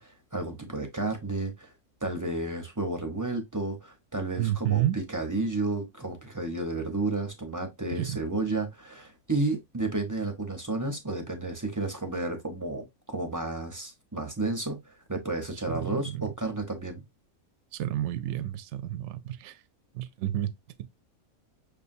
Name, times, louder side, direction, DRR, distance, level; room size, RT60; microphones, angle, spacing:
voice 1, 0.0-1.7 2.0-17.0, right 2 dB, 15° right, 0.7 m, -32 dB
voice 2, 4.4-5.0 7.9-8.2 15.7-16.3 17.7-19.6 19.9-20.5 20.8-20.9, right 13 dB, 65° right, 0.8 m, -30 dB
6.5 x 2.6 x 2.6 m
omnidirectional pair, 1.5 m